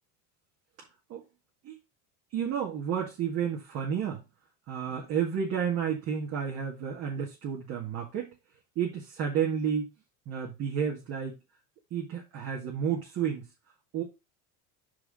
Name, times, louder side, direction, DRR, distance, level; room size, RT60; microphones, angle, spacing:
voice 1, 2.3-4.2 4.7-8.3 8.8-9.9 10.3-11.4 11.9-13.4 13.9-14.0, right 8 dB, 40° right, 1.9 m, -31 dB
5.9 x 4.9 x 4.9 m
supercardioid pair, 145°, 39 cm